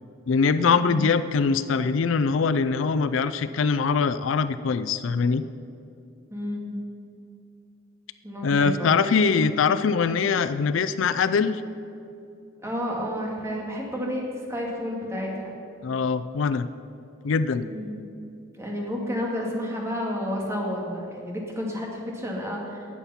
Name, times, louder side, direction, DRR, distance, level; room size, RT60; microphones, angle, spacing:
voice 1, 0.3-5.4 8.4-11.6 15.8-16.7 17.2-17.7, left 5 dB, 70° left, 13 dB, 0.4 m, -23 dB
voice 2, 6.3-6.7 8.2-9.0 12.6-14.2 14.5-15.5 17.6-18.0 18.6-22.9, equal, 15° right, -1 dB, 2.2 m, -31 dB
18.0 x 7.2 x 5.7 m, 2.6 s
head